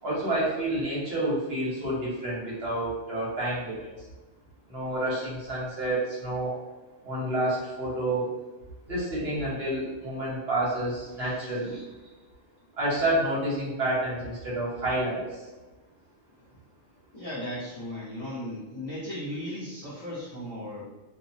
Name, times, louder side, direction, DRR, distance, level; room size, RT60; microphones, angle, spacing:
voice 1, 0.0-3.9 4.7-6.5 7.0-8.3 8.9-11.8 12.8-15.4, right 1 dB, 60° right, -7 dB, 1.2 m, -29 dB
voice 2, 17.1-20.8, left 1 dB, 35° left, -10 dB, 0.7 m, -36 dB
2.6 x 2.2 x 2.7 m, 1.2 s
omnidirectional pair, 1.2 m